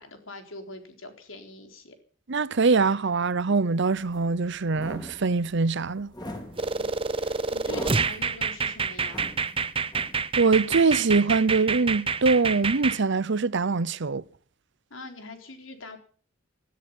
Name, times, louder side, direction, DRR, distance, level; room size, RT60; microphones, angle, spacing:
voice 1, 0.0-2.0 6.8-9.2 14.9-16.0, left 2 dB, 85° left, 4.1 m, -43 dB
voice 2, 2.3-6.1 10.4-14.2, right 4 dB, 65° right, 0.8 m, -23 dB
sound 1, 3.9-10.5, equal, 20° left, 3.8 m, -42 dB
sound 2, 6.6-13.0, right 5 dB, 30° right, 0.9 m, -28 dB
19.0 x 13.5 x 5.4 m
head